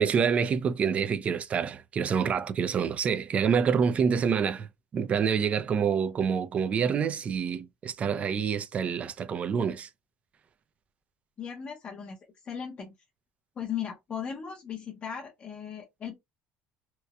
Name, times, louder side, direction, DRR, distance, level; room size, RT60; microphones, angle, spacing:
voice 1, 0.0-4.7 4.9-9.9, right 6 dB, 30° right, 0.3 m, -27 dB
voice 2, 11.4-12.2 12.4-12.9 13.6-16.2, left 8 dB, 30° left, 0.5 m, -37 dB
2.8 x 2.0 x 2.2 m
cardioid pair, 150°, 4 cm